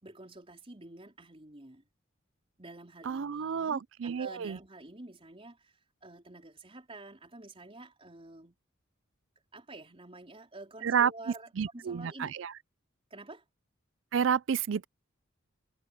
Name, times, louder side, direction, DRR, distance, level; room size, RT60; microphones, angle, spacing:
voice 1, 0.0-1.8 2.6-5.7 6.0-8.5 9.5-12.3 13.1-13.4, right 2 dB, 30° right, 4.5 m, -49 dB
voice 2, 3.1-4.6 10.8-11.1 11.6-12.5 14.1-14.8, right 7 dB, 70° right, 0.4 m, -30 dB
head